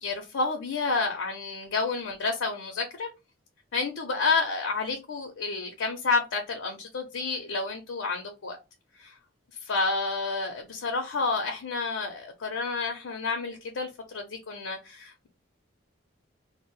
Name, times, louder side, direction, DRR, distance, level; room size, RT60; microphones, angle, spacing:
voice 1, 0.0-3.1 3.7-8.6 9.0-9.1 9.6-15.3, left 4 dB, 85° left, 0.5 m, -30 dB
2.1 x 2.0 x 3.6 m
head